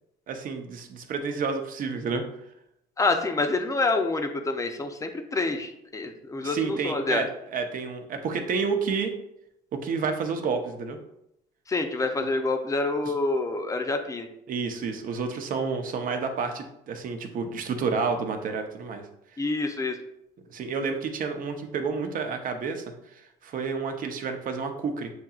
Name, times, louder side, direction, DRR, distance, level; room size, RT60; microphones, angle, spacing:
voice 1, 0.3-2.2 6.4-9.1 9.7-11.0 13.0-13.1 14.5-19.0 20.5-25.1, right 5 dB, 55° right, 6 dB, 0.7 m, -30 dB
voice 2, 3.0-7.2 11.7-14.3 19.4-20.0, left 3 dB, 20° left, 6 dB, 0.6 m, -27 dB
7.5 x 2.8 x 2.4 m, 0.81 s
cardioid pair, 110°, 17 cm